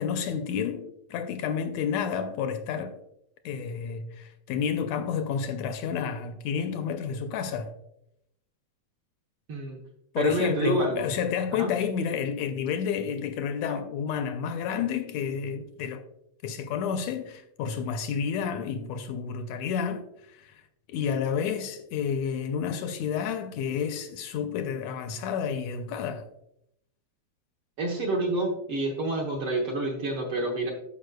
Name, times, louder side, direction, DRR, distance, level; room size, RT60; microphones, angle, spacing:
voice 1, 0.0-3.0 3.5-7.7 10.1-16.0 16.4-20.6 20.9-26.3, left 7 dB, 80° left, 1.7 m, -30 dB
voice 2, 10.2-11.1 11.6-11.7 27.8-30.7, right 2 dB, 65° right, 1.5 m, -28 dB
13.0 x 5.3 x 2.2 m
omnidirectional pair, 3.3 m